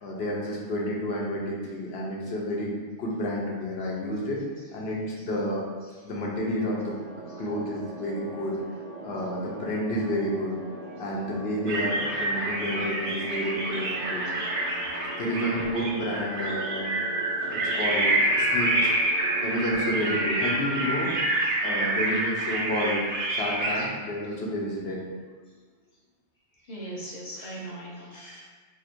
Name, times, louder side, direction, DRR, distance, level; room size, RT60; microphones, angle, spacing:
voice 1, 0.0-2.7 3.0-4.4 4.7-5.6 6.0-7.0 7.4-8.6 9.0-10.6 11.0-14.2 15.2-16.9 17.4-18.9 19.4-21.3 21.6-25.0, equal, 65° left, -3 dB, 0.9 m, -30 dB
sound 1, 6.6-20.5, right 2 dB, 55° right, 0.4 m, -41 dB
sound 2, 11.7-23.9, right 1 dB, 80° right, 0.9 m, -27 dB
voice 2, 26.7-28.5, right 1 dB, 40° left, -5 dB, 0.6 m, -39 dB
2.8 x 2.5 x 4.2 m, 1.4 s
omnidirectional pair, 1.2 m